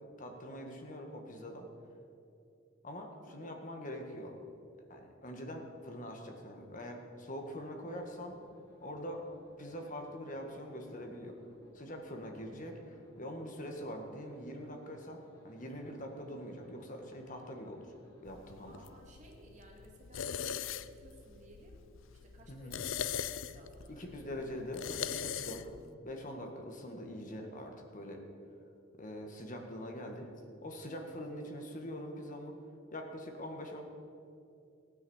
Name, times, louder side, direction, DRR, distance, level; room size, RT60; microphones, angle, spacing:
voice 1, 0.0-1.7 2.8-4.4 4.9-8.4 8.8-9.3 9.6-11.4 11.7-17.9 18.2-18.8 22.5-22.8 23.9-25.7 26.0-28.2 29.0-30.3 30.6-32.6 32.9-33.8, equal, 40° left, 3 dB, 1.8 m, -43 dB
voice 2, 3.3-3.6 12.8-13.6 18.6-21.8 22.1-24.1, right 1 dB, 35° right, 0 dB, 2.5 m, -58 dB
sound 1, 7.4-18.2, left 1 dB, 15° left, 3.9 m, -65 dB
sound 2, 18.3-25.9, left 8 dB, 70° left, 0.5 m, -41 dB
16.0 x 9.3 x 7.2 m, 2.6 s
head